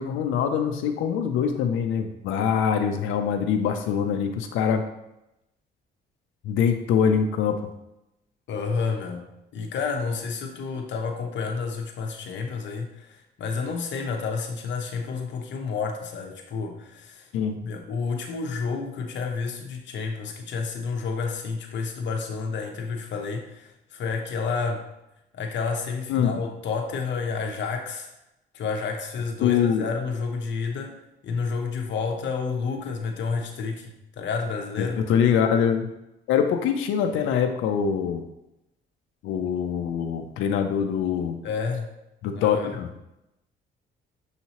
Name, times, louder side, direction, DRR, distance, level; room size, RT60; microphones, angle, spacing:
voice 1, 0.0-4.9 6.4-7.6 17.3-17.6 26.1-26.4 29.4-29.9 34.8-35.9 36.3-38.2 39.2-41.4 42.2-42.9, left 7 dB, 85° left, 5 dB, 0.5 m, -24 dB
voice 2, 8.5-17.3 17.6-24.8 25.3-28.1 28.5-30.9 31.2-35.0 41.4-41.9 42.3-42.8, left 5 dB, 65° left, 3 dB, 0.8 m, -30 dB
6.5 x 2.7 x 2.9 m, 0.89 s
cardioid pair, 90°, 20 cm